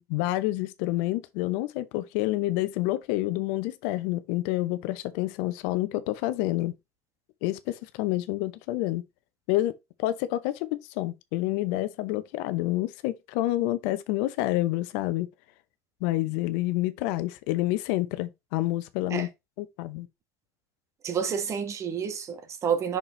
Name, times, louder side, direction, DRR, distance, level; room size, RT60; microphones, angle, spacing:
voice 1, 0.0-6.7 7.4-9.0 9.5-9.7 10.0-10.7 11.0-15.3 16.0-19.3 19.6-20.1, left 16 dB, 65° left, 0.7 m, -28 dB
voice 2, 21.0-23.0, right 7 dB, 40° right, 1.4 m, -29 dB
6.0 x 5.4 x 3.2 m
hypercardioid pair, 75°, 8 cm